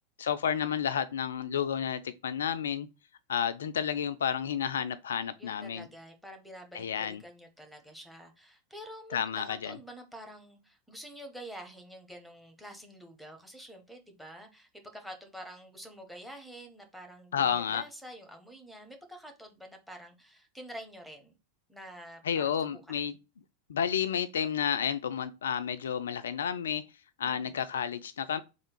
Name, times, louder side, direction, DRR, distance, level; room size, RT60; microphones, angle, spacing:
voice 1, 0.2-2.9 3.3-5.9 6.7-7.2 9.1-9.7 17.3-17.8 22.2-23.1 23.7-26.8 27.2-28.4, left 8 dB, 65° left, 0.3 m, -31 dB
voice 2, 5.4-21.3 21.7-23.1 27.2-27.6, equal, ahead, 1.0 m, -48 dB
3.3 x 2.4 x 4.4 m
figure-of-eight pair, 85°, 0 cm